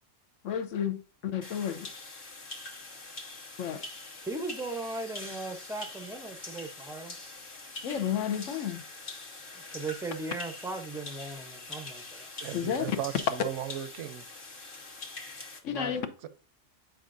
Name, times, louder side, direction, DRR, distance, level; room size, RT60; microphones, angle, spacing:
voice 1, 0.4-1.9 3.6-3.8 7.8-8.8 12.5-13.0 15.6-16.1, left 9 dB, 80° left, 1.1 m, -31 dB
sound 1, 1.4-15.6, left 3 dB, 45° left, 1.3 m, -44 dB
voice 2, 4.2-7.2 9.7-12.3 15.7-16.0, right 2 dB, 5° right, 0.4 m, -38 dB
voice 3, 12.4-14.2 16.2-16.3, right 11 dB, 75° right, 0.9 m, -36 dB
9.1 x 4.8 x 2.5 m
omnidirectional pair, 1.3 m